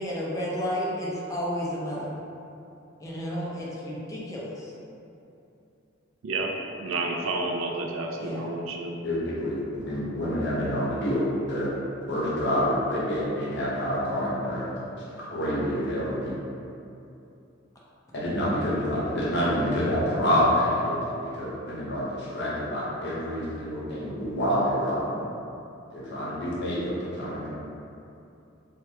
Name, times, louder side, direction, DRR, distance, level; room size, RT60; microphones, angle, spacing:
voice 1, 0.0-2.1 3.0-4.7 8.2-8.5 25.1-25.2, equal, 15° left, -6 dB, 0.4 m, -32 dB
voice 2, 6.8-9.0, right 2 dB, 85° right, 2 dB, 0.3 m, -30 dB
voice 3, 9.0-11.7 12.1-14.7 15.3-16.4 18.1-25.2 25.9-27.5, equal, 60° left, -7 dB, 0.8 m, -27 dB
3.2 x 2.2 x 2.8 m, 2.7 s
head